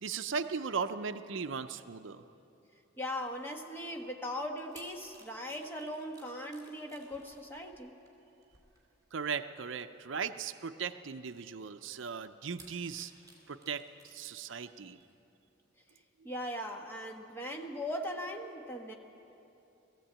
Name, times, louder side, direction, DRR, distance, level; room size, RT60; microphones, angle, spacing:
voice 1, 0.0-2.2 9.1-13.1 13.5-15.0, right 6 dB, 70° right, 10 dB, 0.6 m, -37 dB
voice 2, 3.0-8.0 16.2-18.9, left 1 dB, 10° left, 1 dB, 1.4 m, -39 dB
sound 1, 4.6-9.2 9.9-10.1 11.1-11.2 12.5-14.6 15.0-15.1, right 3 dB, 20° right, 4.0 m, -59 dB
19.5 x 15.0 x 8.8 m, 2.9 s
head